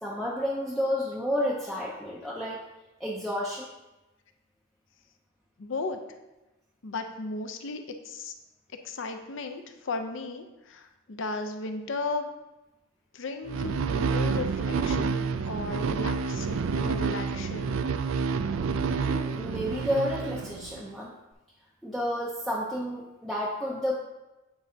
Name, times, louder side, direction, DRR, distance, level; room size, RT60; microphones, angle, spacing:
voice 1, 0.0-2.6 3.0-3.7 18.8-21.1 21.8-24.0, equal, ahead, -5 dB, 0.5 m, -31 dB
voice 2, 5.6-6.0 6.8-8.3 8.8-12.3 13.1-17.8, left 3 dB, 60° left, 6 dB, 0.5 m, -35 dB
sound 1, 13.5-20.9, right 5 dB, 70° right, 0.3 m, -29 dB
8.7 x 4.6 x 2.7 m, 1.0 s
head